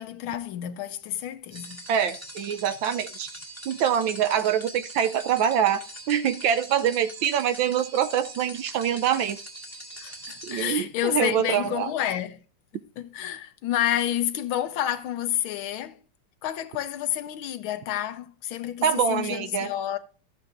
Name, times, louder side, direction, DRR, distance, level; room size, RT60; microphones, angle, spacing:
voice 1, 0.0-1.8 10.0-12.4 13.0-16.0 16.4-20.0, left 11 dB, 70° left, 1.5 m, -29 dB
sound 1, 1.5-10.6, right 1 dB, 10° right, 1.6 m, -42 dB
voice 2, 1.9-3.4 3.7-5.8 6.1-9.4 10.4-11.9 18.8-19.7, right 9 dB, 70° right, 1.3 m, -25 dB
13.5 x 8.3 x 2.5 m
omnidirectional pair, 2.4 m